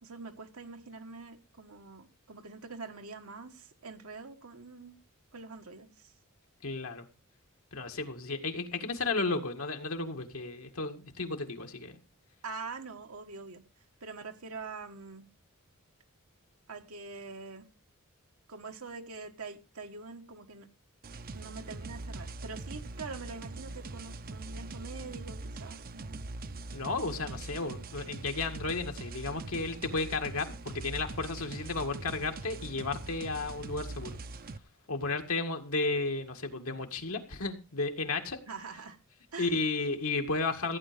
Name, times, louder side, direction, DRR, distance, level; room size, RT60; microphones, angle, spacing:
voice 1, 0.0-5.0 5.3-6.1 12.4-13.6 14.0-15.3 16.7-17.7 18.5-20.7 21.3-26.3 27.1-27.9 38.5-39.0 39.3-39.6, right 4 dB, 85° right, 4 dB, 1.6 m, -45 dB
voice 2, 6.6-7.0 7.7-12.0 26.7-34.2 34.9-38.4 39.4-40.8, left 3 dB, 80° left, 4 dB, 2.0 m, -33 dB
sound 1, 21.0-34.6, right 2 dB, 45° right, 0.7 m, -42 dB
15.5 x 9.2 x 5.1 m, 0.32 s
head